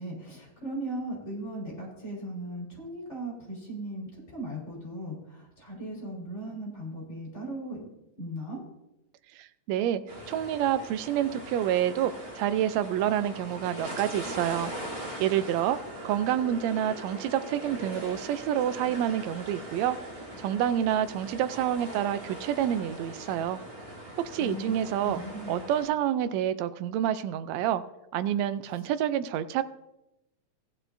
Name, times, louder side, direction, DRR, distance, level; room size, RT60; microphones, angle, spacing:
voice 1, 0.0-7.8 8.2-8.6 24.4-25.6, right 1 dB, 20° left, -4 dB, 4.7 m, -38 dB
voice 2, 9.4-10.0 10.3-14.7 15.2-15.8 16.0-20.0 20.4-23.6 24.2-25.2 25.5-27.8 28.1-29.6, right 10 dB, 80° right, 12 dB, 1.6 m, -28 dB
sound 1, 10.1-25.8, right 1 dB, 25° right, 3.9 m, -41 dB
15.5 x 10.5 x 2.6 m, 0.91 s
omnidirectional pair, 3.6 m